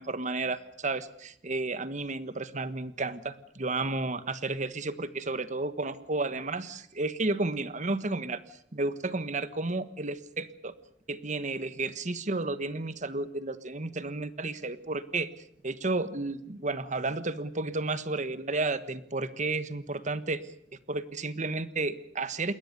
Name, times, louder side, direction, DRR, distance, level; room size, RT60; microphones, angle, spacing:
voice 1, 0.0-8.4 8.7-10.7 11.1-15.3 15.6-20.4 20.9-22.5, right 3 dB, 45° right, 13 dB, 1.4 m, -32 dB
28.5 x 21.5 x 6.8 m, 0.65 s
head